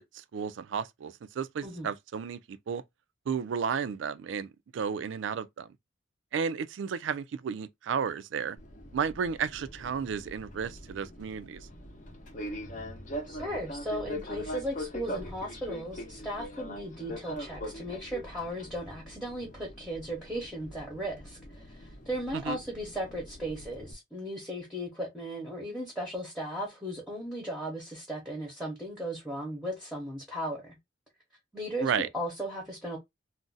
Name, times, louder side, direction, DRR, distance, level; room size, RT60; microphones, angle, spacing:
voice 1, 0.0-2.8 3.3-5.7 6.3-8.6 8.9-11.7 22.3-22.6 31.8-32.1, right 6 dB, 75° right, 0.3 m, -33 dB
Fixed-wing aircraft airplane, 8.6-23.9, equal, 40° left, 0.7 m, -42 dB
voice 2, 13.3-30.8 31.5-33.0, equal, ahead, 0.8 m, -36 dB
2.5 x 2.1 x 3.8 m
head